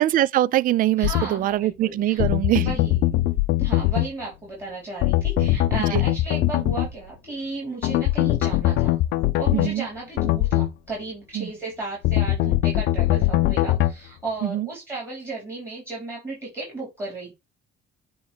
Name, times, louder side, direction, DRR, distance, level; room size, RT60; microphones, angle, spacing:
voice 1, 0.0-2.7 5.9-6.0 9.5-9.9 11.3-11.5 14.4-14.7, right 13 dB, 55° right, 0.4 m, -22 dB
sound 1, 1.0-1.3 2.2-4.1 5.0-6.9 7.8-9.7 10.2-10.7 12.0-13.9, left 16 dB, 80° left, 0.6 m, -21 dB
voice 2, 1.0-2.3 2.6-3.2 3.6-9.0 9.4-17.3, right 2 dB, 15° right, 4.3 m, -34 dB
sound 2, 5.3-6.0 6.6-7.2 8.5-9.2 10.5-10.9 12.4-12.8 15.2-15.3, right 6 dB, 85° right, 1.3 m, -41 dB
9.3 x 3.1 x 4.4 m
cardioid pair, 110°, 17 cm